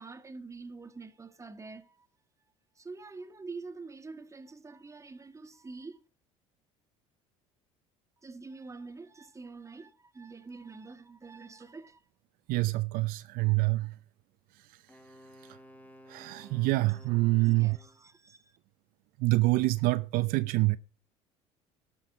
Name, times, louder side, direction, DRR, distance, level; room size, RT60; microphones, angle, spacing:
voice 1, 0.0-2.1 2.7-6.0 8.2-12.0 17.4-18.6, right 4 dB, 20° right, 1.6 m, -46 dB
voice 2, 12.5-13.9 16.1-17.8 19.2-20.8, right 22 dB, 65° right, 0.6 m, -26 dB
Wind instrument woodwind instrument, 14.9-18.0, equal, 10° left, 1.9 m, -54 dB
12.0 x 5.4 x 7.9 m
hypercardioid pair, 75°, 16 cm